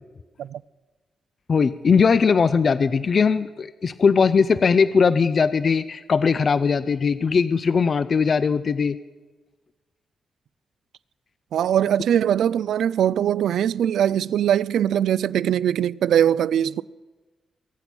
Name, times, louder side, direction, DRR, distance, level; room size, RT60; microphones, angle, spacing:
voice 1, 1.5-9.0, left 5 dB, 35° left, 0.4 m, -19 dB
voice 2, 11.5-16.8, right 10 dB, 85° right, 0.4 m, -21 dB
22.5 x 8.8 x 6.1 m
wide cardioid pair, 180°, 0 cm